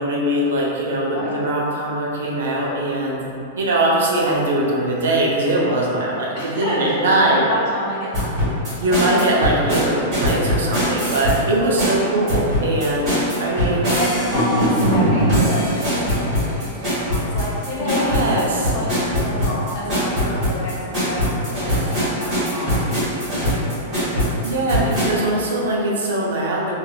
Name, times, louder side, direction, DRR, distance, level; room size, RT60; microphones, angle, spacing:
voice 1, 0.0-3.2 3.6-7.5 8.8-13.9 17.8-18.7 24.4-26.7, right 1 dB, 90° right, -3 dB, 0.5 m, -21 dB
voice 2, 1.1-1.4 6.3-8.7 13.9-18.1 18.3-23.5 23.8-24.0, left 1 dB, 40° left, -7 dB, 0.7 m, -29 dB
sound 1, 8.1-11.4 11.8-25.1, equal, 20° right, 1.3 m, -21 dB
3.3 x 2.4 x 2.2 m, 2.7 s
supercardioid pair, 175°, 0 cm